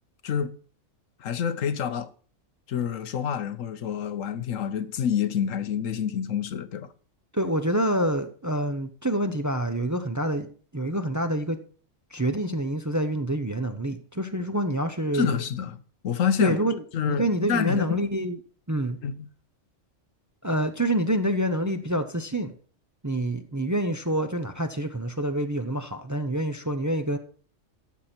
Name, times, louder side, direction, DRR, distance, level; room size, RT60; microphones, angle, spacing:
voice 1, 0.2-0.6 1.2-2.1 2.7-6.9 15.1-15.8 16.0-16.6 16.9-18.0 19.0-19.2, left 8 dB, 80° left, 1.2 m, -27 dB
voice 2, 7.3-11.6 12.1-15.4 16.4-18.4 18.7-19.0 20.4-22.5 23.0-27.2, right 1 dB, 20° right, 0.6 m, -27 dB
13.0 x 7.4 x 4.4 m
omnidirectional pair, 1.3 m